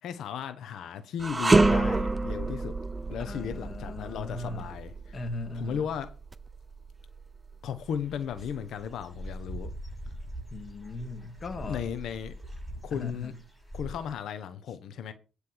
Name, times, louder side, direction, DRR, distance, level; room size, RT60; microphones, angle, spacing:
voice 1, 0.0-2.8 3.1-5.2 5.5-6.1 7.6-9.7 11.6-12.3 12.8-13.3 13.7-15.1, left 8 dB, 75° left, 1.1 m, -35 dB
sound 1, 1.2-10.4 10.9-11.0 11.9-12.8, right 2 dB, 20° right, 0.7 m, -29 dB
voice 2, 3.2-4.7 5.1-5.9 10.5-11.8 12.9-13.4, left 2 dB, 40° left, 1.9 m, -38 dB
Dog / Bird, 7.8-14.1, equal, ahead, 6.2 m, -42 dB
9.9 x 5.2 x 6.2 m
cardioid pair, 90°, 0 cm